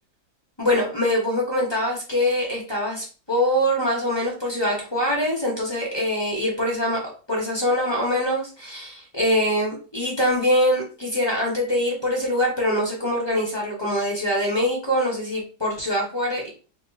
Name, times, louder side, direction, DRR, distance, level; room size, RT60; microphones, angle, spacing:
voice 1, 0.6-7.0 7.3-16.5, equal, 20° left, -2 dB, 0.9 m, -23 dB
3.1 x 2.5 x 3.9 m, 0.37 s
omnidirectional pair, 1.7 m